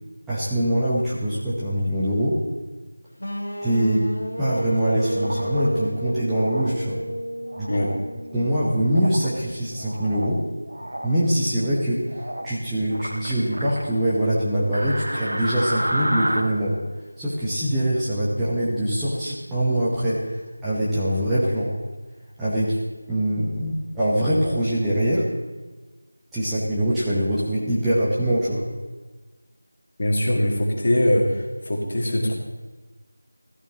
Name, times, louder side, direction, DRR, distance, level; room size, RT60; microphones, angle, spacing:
voice 1, 0.3-2.4 3.6-4.1 4.4-7.0 7.6-7.7 8.3-10.4 11.0-16.8 17.2-21.8 22.4-22.8 23.1-25.3 26.3-28.7, right 1 dB, 5° right, -12 dB, 1.2 m, -23 dB
sound 1, 3.2-9.1, equal, 70° left, 1.5 m, -32 dB
sound 2, 5.1-5.7 6.4-6.7 7.5-8.0 8.9-9.3 9.7-10.3 10.7-11.1 12.1-12.5 12.9-13.8 14.7-16.4, right 1 dB, 65° right, 1.4 m, -30 dB
voice 2, 30.0-32.4, left 1 dB, 35° left, 0 dB, 2.1 m, -22 dB
15.5 x 13.5 x 3.0 m, 1.3 s
figure-of-eight pair, 170°, 0 cm